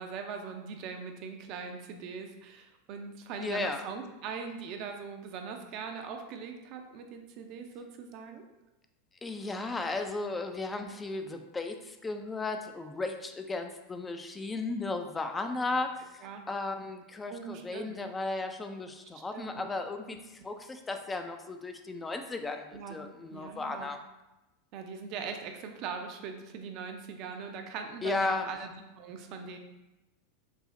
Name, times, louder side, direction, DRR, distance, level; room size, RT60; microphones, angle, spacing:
voice 1, 0.0-8.5 16.2-16.4 17.3-18.0 19.1-19.7 22.7-23.0 23.3-23.9 24.7-29.6, right 6 dB, 50° right, 4 dB, 0.5 m, -41 dB
voice 2, 3.4-3.8 9.2-24.0 28.0-28.5, left 3 dB, 15° left, 5 dB, 0.3 m, -35 dB
5.4 x 2.0 x 2.5 m, 1.0 s
hypercardioid pair, 95°, 0 cm